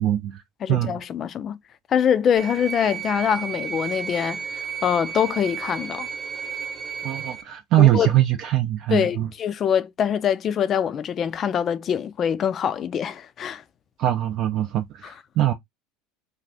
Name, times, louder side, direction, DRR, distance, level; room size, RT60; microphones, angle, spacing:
voice 1, 0.0-0.4 0.7-1.0 7.0-9.3 14.0-15.5, right 13 dB, 55° right, 0.4 m, -22 dB
voice 2, 0.6-1.6 1.9-6.1 7.8-8.1 8.9-13.6 15.0-15.1, left 8 dB, 35° left, 0.4 m, -24 dB
sound 1, 2.4-7.4, right 7 dB, 25° right, 0.9 m, -33 dB
2.6 x 2.4 x 3.2 m
supercardioid pair, 110°, 0 cm